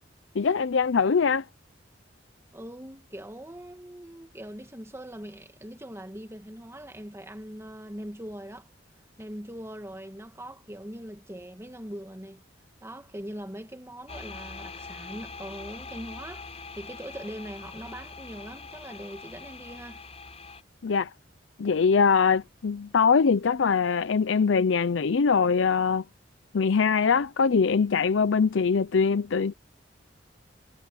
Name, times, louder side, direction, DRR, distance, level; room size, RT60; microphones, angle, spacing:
voice 1, 0.4-1.4 20.8-21.1 21.6-26.0 26.5-29.5, left 5 dB, 75° left, 0.5 m, -22 dB
voice 2, 2.5-8.7 9.2-12.4 12.8-20.0, equal, 15° right, 2.0 m, -41 dB
sound 1, 14.1-20.6, left 4 dB, 35° left, 7.4 m, -43 dB
head